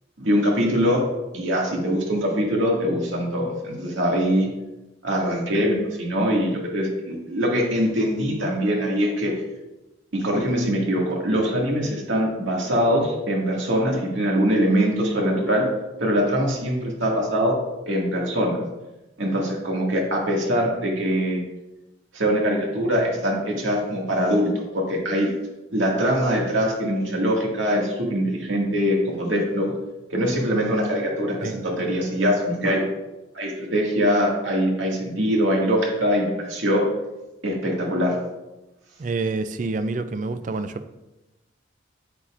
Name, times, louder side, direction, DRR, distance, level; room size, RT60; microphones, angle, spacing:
voice 1, 0.2-1.1 1.3-4.5 5.0-9.3 10.1-15.7 16.0-17.6 17.9-18.6 19.2-21.4 22.1-25.3 25.7-29.7 30.1-32.8 33.3-36.9 37.4-38.2, equal, 80° right, -2 dB, 2.0 m, -23 dB
voice 2, 39.0-41.0, right 3 dB, 40° right, 10 dB, 0.4 m, -28 dB
9.0 x 8.2 x 2.5 m, 1.0 s
head